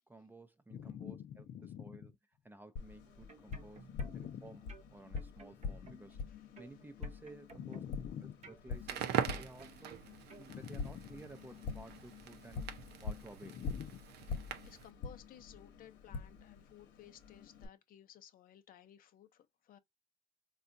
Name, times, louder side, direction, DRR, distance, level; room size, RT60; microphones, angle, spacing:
voice 1, 0.1-1.4 1.8-2.1 2.4-3.9 4.2-4.6 4.9-6.2 6.6-7.8 8.6-10.0 10.4-12.7 13.0-13.6, right 2 dB, 10° right, 0.6 m, -54 dB
voice 2, 0.7-2.1 3.8-4.5 5.8-5.9 7.6-8.5 10.5-11.3 13.4-14.0 14.3-19.8, left 9 dB, 60° left, 0.6 m, -50 dB
Tap, 2.8-17.7, left 5 dB, 80° left, 1.0 m, -46 dB
sound 1, 3.1-4.4 4.7-6.2 6.6-8.1 8.4-10.0 10.3-10.5, right 4 dB, 40° right, 0.9 m, -57 dB
Crackle, 8.7-14.9, right 9 dB, 75° right, 0.6 m, -42 dB
4.1 x 2.3 x 2.6 m
cardioid pair, 110°, 17 cm